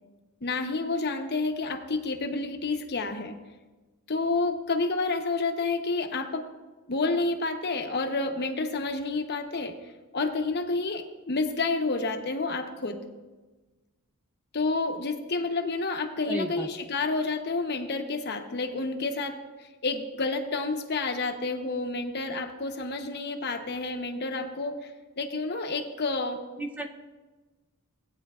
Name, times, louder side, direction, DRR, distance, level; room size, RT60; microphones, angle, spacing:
voice 1, 0.4-3.4 4.1-6.5 6.9-9.8 10.1-13.0 14.5-19.4 19.8-26.4, left 3 dB, 50° left, 5 dB, 0.9 m, -29 dB
voice 2, 16.3-16.7 26.6-26.9, right 1 dB, 5° right, 3 dB, 0.6 m, -32 dB
17.5 x 9.2 x 2.4 m, 1.2 s
head